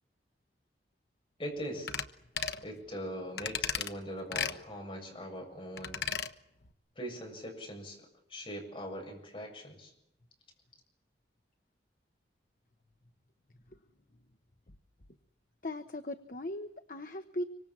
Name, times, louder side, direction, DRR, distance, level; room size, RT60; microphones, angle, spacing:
voice 1, 1.4-1.9 2.6-6.0 7.0-9.9, equal, 30° left, 2 dB, 7.7 m, -41 dB
sound 1, 1.9-2.1 2.4-2.6 3.4-3.9 4.3-4.6 5.8-6.3 6.7-6.8, left 7 dB, 75° left, 1.2 m, -34 dB
voice 2, 15.6-17.4, left 1 dB, 50° left, 8 dB, 1.1 m, -38 dB
26.0 x 25.0 x 7.4 m, 0.79 s
head